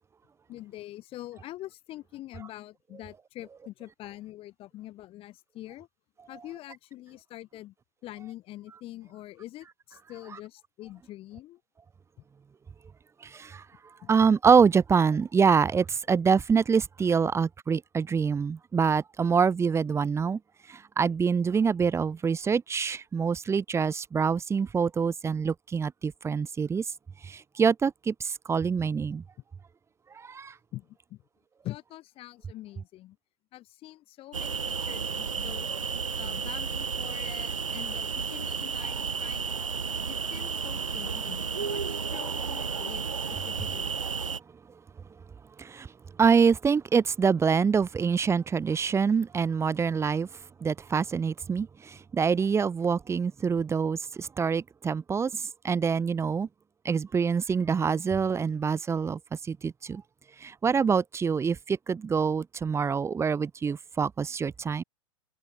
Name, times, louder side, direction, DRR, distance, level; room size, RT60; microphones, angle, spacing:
voice 1, 0.5-5.9 6.3-7.7 8.0-11.6 14.0-14.1 30.7-31.2 31.6-33.2 33.5-35.8 36.2-39.6 40.1-44.0, left 15 dB, 35° left, 3.3 m, -44 dB
voice 2, 13.3-13.6 14.1-20.4 20.7-26.8 27.2-29.2 30.2-30.5 45.6-45.9 46.2-50.3 50.6-56.5 56.8-59.2 59.5-60.0 60.4-64.8, right 6 dB, 15° right, 2.0 m, -25 dB
sound 1, 34.3-44.4, right 5 dB, 90° right, 0.8 m, -32 dB
hypercardioid pair, 100°, 16 cm